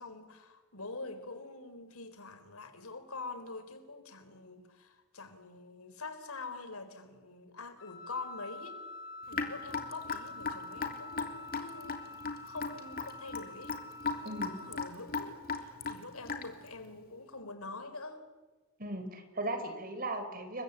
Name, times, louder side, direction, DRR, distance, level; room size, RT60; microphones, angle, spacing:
voice 1, 0.0-8.8 9.3-13.7 14.0-18.2, left 3 dB, 85° left, 9 dB, 4.1 m, -45 dB
Wind instrument woodwind instrument, 7.8-14.7, left 3 dB, 60° left, 5.7 m, -47 dB
Raindrop / Drip, 9.3-16.7, left 4 dB, 45° left, 3.1 m, -37 dB
voice 2, 18.8-20.6, right 2 dB, 40° right, 8 dB, 4.7 m, -37 dB
29.5 x 23.5 x 8.5 m, 1.3 s
head